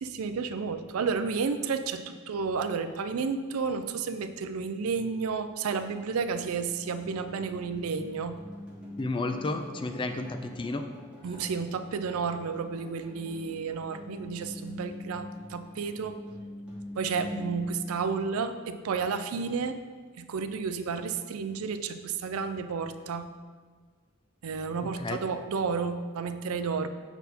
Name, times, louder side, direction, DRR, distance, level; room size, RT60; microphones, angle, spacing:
voice 1, 0.0-8.4 11.2-16.2 17.0-19.8 20.2-23.3 24.4-26.9, right 5 dB, 85° right, 10 dB, 0.4 m, -31 dB
sound 1, 4.6-18.8, left 1 dB, 5° right, 1.5 m, -45 dB
voice 2, 9.0-10.8 25.0-25.2, left 2 dB, 25° left, 7 dB, 0.3 m, -32 dB
6.8 x 4.2 x 4.2 m, 1.6 s
head